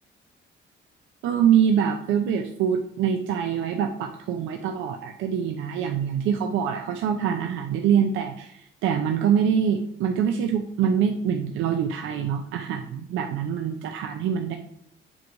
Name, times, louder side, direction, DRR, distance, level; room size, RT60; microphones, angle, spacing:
voice 1, 1.2-14.6, right 8 dB, 90° right, 4 dB, 0.6 m, -24 dB
7.5 x 3.1 x 4.7 m, 0.70 s
cardioid pair, 90°, 20 cm